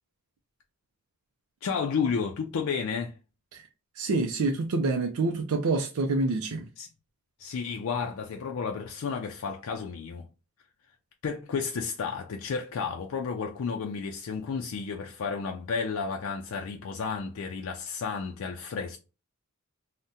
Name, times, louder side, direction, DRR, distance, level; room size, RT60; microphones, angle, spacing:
voice 1, 1.6-3.1 6.8-6.9 7.4-10.3 11.2-19.0, left 5 dB, 75° left, 0.4 m, -32 dB
voice 2, 4.0-6.7, right 3 dB, 85° right, 0.4 m, -27 dB
2.7 x 2.1 x 3.5 m
head